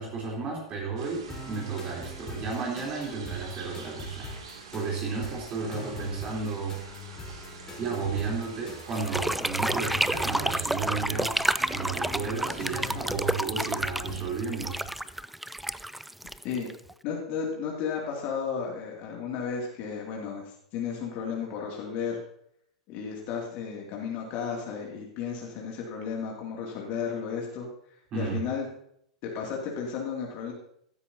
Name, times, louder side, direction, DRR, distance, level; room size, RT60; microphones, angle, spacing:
voice 1, 0.0-6.9 7.8-11.4 11.7-14.8 28.1-28.4, right 4 dB, 35° right, -3 dB, 3.5 m, -33 dB
sound 1, 1.0-9.1, right 5 dB, 65° right, 2.5 m, -47 dB
sound 2, 1.3-14.4, left 1 dB, 20° left, 3.6 m, -42 dB
sound 3, 8.9-16.9, right 1 dB, 5° right, 0.4 m, -30 dB
voice 2, 17.0-22.2 22.9-27.7 28.1-28.7 29.2-30.5, left 6 dB, 40° left, -2 dB, 2.5 m, -33 dB
16.0 x 13.0 x 2.8 m, 0.70 s
figure-of-eight pair, 90°, 3 cm